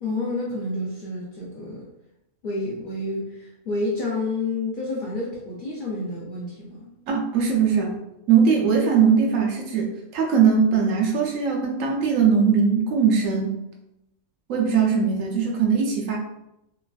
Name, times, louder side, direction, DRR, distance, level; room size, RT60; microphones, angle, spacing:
voice 1, 0.0-1.9 2.4-6.9, left 2 dB, 55° left, -5 dB, 0.5 m, -29 dB
voice 2, 7.1-8.0 8.3-13.6 14.5-16.2, right 6 dB, 75° right, 0 dB, 1.0 m, -20 dB
3.0 x 2.5 x 2.3 m, 0.86 s
omnidirectional pair, 1.4 m